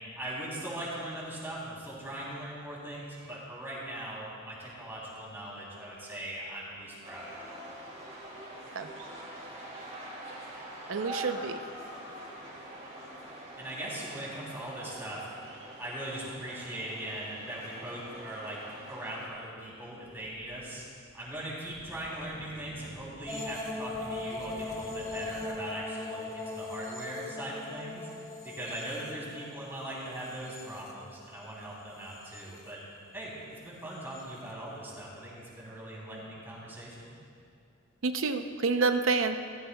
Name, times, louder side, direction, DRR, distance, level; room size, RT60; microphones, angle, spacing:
voice 1, 0.2-7.5 13.6-15.3 15.8-20.8 21.1-28.1 28.4-32.8 33.1-37.2, right 1 dB, 10° right, -7 dB, 3.1 m, -40 dB
sound 1, 7.0-19.3, right 1 dB, 30° right, 2.9 m, -44 dB
voice 2, 10.9-11.6 38.0-39.4, right 4 dB, 70° right, 7 dB, 0.6 m, -28 dB
sound 2, 20.0-25.6, equal, 90° left, 1.9 m, -52 dB
sound 3, 23.3-31.4 31.9-32.7 33.9-34.2, left 2 dB, 15° left, 1.1 m, -40 dB
17.0 x 15.0 x 2.3 m, 2.4 s
head